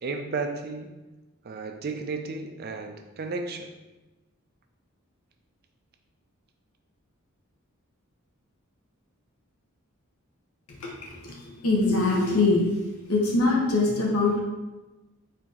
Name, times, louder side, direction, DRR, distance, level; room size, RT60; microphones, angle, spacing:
voice 1, 0.0-0.9 1.4-3.7, right 4 dB, 45° right, 4 dB, 0.4 m, -33 dB
voice 2, 11.2-12.7 13.1-14.4, left 3 dB, 75° left, -2 dB, 0.8 m, -23 dB
4.4 x 2.8 x 3.7 m, 1.1 s
head